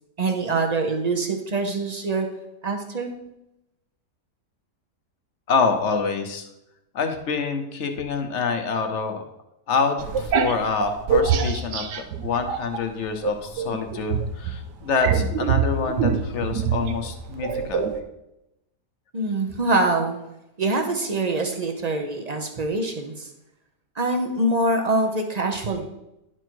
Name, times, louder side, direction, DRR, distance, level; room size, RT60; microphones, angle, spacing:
voice 1, 0.2-2.3 2.6-3.1 19.1-20.2 20.6-23.3 24.0-25.9, right 2 dB, 45° right, 4 dB, 0.5 m, -24 dB
voice 2, 5.5-6.5 6.9-9.2 9.7-11.8 12.2-17.9, left 5 dB, 50° left, 6 dB, 1.0 m, -26 dB
sound 1, 10.0-12.8 13.2-18.0, right 6 dB, 90° right, 1.3 m, -24 dB
10.5 x 4.5 x 4.5 m, 0.89 s
omnidirectional pair, 1.8 m